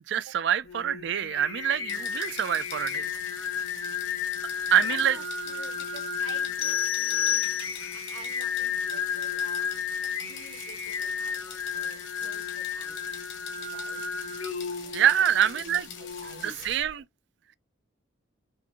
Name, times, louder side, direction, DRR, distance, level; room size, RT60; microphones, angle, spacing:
voice 1, 0.1-3.1 3.3-3.5 4.7-5.2 7.8-7.9 14.9-15.9 16.3-17.0, right 9 dB, 60° right, 0.3 m, -26 dB
Singing, 0.6-16.9, left 7 dB, 85° left, 1.2 m, -33 dB
sound 1, 1.9-16.8, left 7 dB, 70° left, 1.5 m, -44 dB
voice 2, 4.7-9.8 10.2-13.0 13.7-14.1 14.8-15.1 15.4-15.5 16.0-16.5, right 4 dB, 90° right, 1.3 m, -50 dB
sound 2, 6.6-8.1, left 15 dB, 30° left, 0.4 m, -30 dB
6.1 x 2.5 x 2.8 m
head